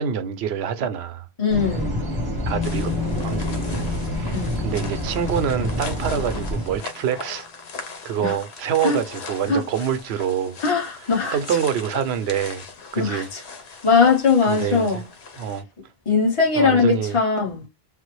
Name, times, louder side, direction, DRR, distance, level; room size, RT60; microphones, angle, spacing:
voice 1, 0.0-1.3 2.5-2.9 3.2-7.5 8.0-10.6 11.3-12.6 12.9-13.3 14.5-15.0 15.4-15.6 16.6-17.2, right 8 dB, 85° right, 0.8 m, -26 dB
voice 2, 1.4-2.0 4.3-4.7 8.2-8.4 8.8-9.0 9.5-9.6 10.6-11.4 12.9-13.4 13.8-15.0 16.1-17.6, left 5 dB, 30° left, 1.1 m, -20 dB
sound 1, 1.5-6.8, equal, 25° right, 0.8 m, -27 dB
sound 2, 2.5-6.8, left 9 dB, 60° left, 0.6 m, -33 dB
sound 3, 2.6-15.6, left 4 dB, 80° left, 1.0 m, -39 dB
3.4 x 2.0 x 3.1 m
omnidirectional pair, 1.0 m